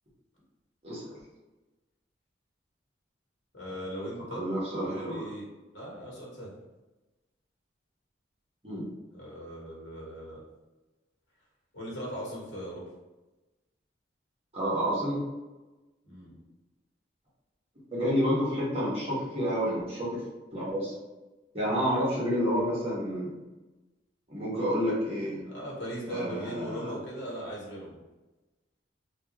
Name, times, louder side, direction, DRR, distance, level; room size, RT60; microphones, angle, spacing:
voice 1, 3.5-4.4 4.8-5.4 5.7-6.5 9.1-10.4 11.7-12.8 16.0-16.4 21.7-21.9 25.4-28.0, equal, 85° left, -4 dB, 1.3 m, -39 dB
voice 2, 4.3-5.3 8.6-8.8 14.5-15.2 17.9-20.2 20.5-20.9 21.5-23.3 24.3-25.4 26.1-26.9, equal, 35° right, -7 dB, 1.3 m, -29 dB
3.3 x 2.4 x 2.9 m, 1.1 s
head